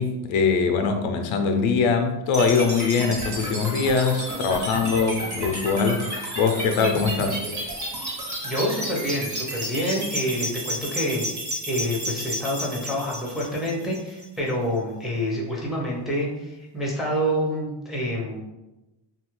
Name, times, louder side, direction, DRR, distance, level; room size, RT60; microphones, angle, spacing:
voice 1, 0.0-7.4, left 5 dB, 80° left, 5 dB, 0.6 m, -22 dB
sound 1, 2.3-14.4, equal, 40° right, 1.2 m, -32 dB
voice 2, 8.4-18.4, equal, ahead, -3 dB, 0.5 m, -27 dB
2.7 x 2.4 x 3.0 m, 1.0 s
cardioid pair, 120°, 47 cm